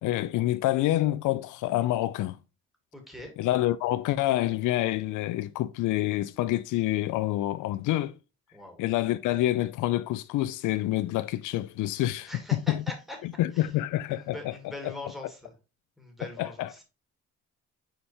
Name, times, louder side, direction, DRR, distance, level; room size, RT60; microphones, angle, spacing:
voice 1, 0.0-2.4 3.4-8.2 8.8-12.3 12.7-12.8 13.4-14.4 14.8-14.9 16.4-16.8, left 15 dB, 80° left, 0.5 m, -27 dB
voice 2, 2.9-3.4 8.5-8.8 12.2-13.2 13.5-13.7 14.1-15.5 16.0-16.8, left 1 dB, ahead, 2.4 m, -42 dB
5.2 x 4.3 x 4.2 m
cardioid pair, 90°, 30 cm